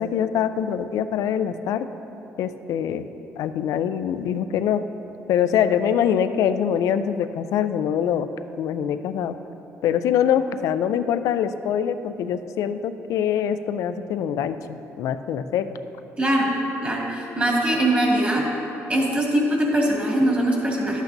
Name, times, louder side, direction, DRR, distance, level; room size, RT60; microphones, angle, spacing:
voice 1, 0.0-1.9 2.4-3.1 3.4-4.8 5.3-8.3 8.6-9.4 9.8-15.7, left 9 dB, 80° left, 11 dB, 0.3 m, -24 dB
voice 2, 16.2-16.5 16.8-18.4 18.9-21.0, right 1 dB, 25° right, -3 dB, 1.9 m, -21 dB
11.5 x 8.1 x 2.7 m, 3.0 s
cardioid pair, 105°, 6 cm